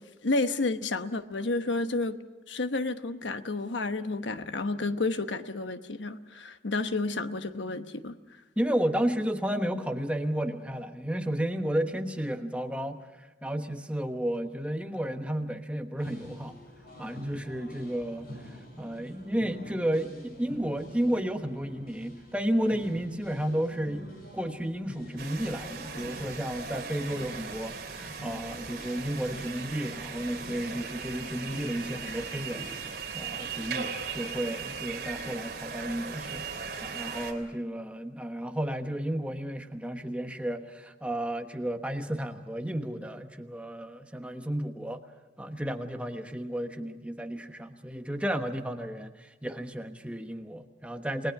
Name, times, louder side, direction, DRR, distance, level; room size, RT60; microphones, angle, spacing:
voice 1, 0.2-2.2 2.5-8.2, left 3 dB, 85° left, 9 dB, 1.1 m, -30 dB
voice 2, 8.6-13.0 13.4-16.6 17.0-32.7 33.1-36.5 36.8-45.0 45.4-51.3, right 1 dB, 5° right, 5 dB, 1.2 m, -32 dB
sound 1, 16.0-33.0, equal, 55° left, 6.4 m, -47 dB
sound 2, 25.2-37.3, right 5 dB, 55° right, 3.2 m, -38 dB
29.5 x 19.5 x 6.0 m, 1.1 s
head